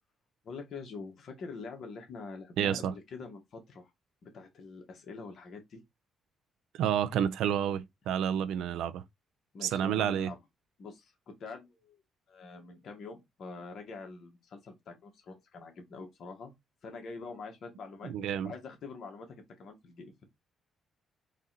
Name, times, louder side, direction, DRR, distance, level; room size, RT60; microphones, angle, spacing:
voice 1, 0.4-3.9 4.2-5.8 9.5-10.4 10.8-12.0 12.3-16.5 16.8-18.1 18.4-20.2, left 4 dB, 60° left, 1.4 m, -45 dB
voice 2, 2.6-2.9 6.7-9.0 9.6-10.3 18.0-18.5, right 9 dB, 85° right, 0.5 m, -30 dB
4.0 x 2.5 x 4.0 m
cardioid pair, 90°, 0 cm